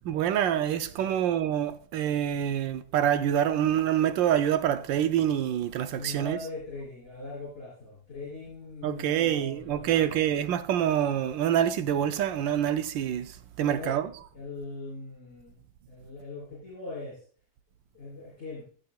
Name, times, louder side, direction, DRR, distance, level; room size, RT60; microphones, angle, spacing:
voice 1, 0.0-6.5 8.8-14.1, right 10 dB, 75° right, 1.3 m, -26 dB
voice 2, 5.9-10.2 13.6-14.0 14.3-17.2 17.9-18.7, left 2 dB, 35° left, 3.5 m, -41 dB
15.0 x 6.8 x 2.3 m
omnidirectional pair, 2.2 m